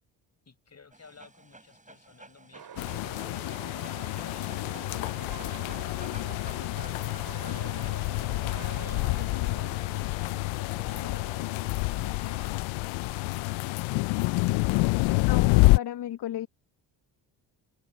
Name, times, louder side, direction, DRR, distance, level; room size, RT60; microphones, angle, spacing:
voice 1, 0.4-3.3 3.8-6.0 9.8-11.4, left 5 dB, 35° left, 6.7 m, -56 dB
Dog, 0.9-7.7, right 2 dB, 15° right, 8.0 m, -52 dB
sound 1, 2.5-12.5, right 8 dB, 55° right, 4.8 m, -46 dB
sound 2, 2.8-15.8, left 23 dB, 85° left, 0.5 m, -28 dB
voice 2, 15.3-16.5, left 11 dB, 60° left, 0.9 m, -34 dB
supercardioid pair, 70°, 45 cm